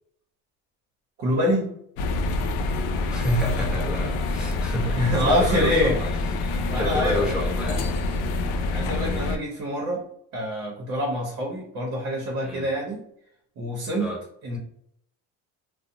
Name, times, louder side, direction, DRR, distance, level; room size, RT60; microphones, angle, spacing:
voice 1, 1.2-1.7 5.0-6.0 6.7-7.4 8.7-10.0 10.3-13.0 13.6-14.1 14.4-14.6, equal, 50° right, -2 dB, 0.8 m, -25 dB
sound 1, 2.0-9.4, left 3 dB, 75° left, 0.5 m, -26 dB
voice 2, 3.1-7.9 12.4-12.7 14.0-14.2, equal, 5° right, -4 dB, 0.7 m, -30 dB
2.6 x 2.0 x 2.6 m, 0.71 s
cardioid pair, 145°, 31 cm